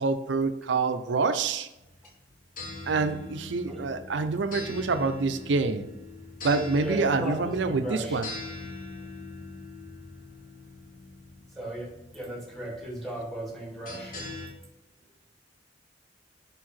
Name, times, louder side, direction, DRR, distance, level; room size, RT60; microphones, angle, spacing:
voice 1, 0.0-1.7 2.9-5.8 6.4-8.3, right 4 dB, 75° right, 9 dB, 0.5 m, -26 dB
sound 1, 1.8-14.5, left 3 dB, 50° left, 1.4 m, -42 dB
voice 2, 6.8-8.2 11.5-14.2, right 1 dB, ahead, -1 dB, 1.3 m, -36 dB
5.3 x 4.7 x 4.2 m, 0.96 s
head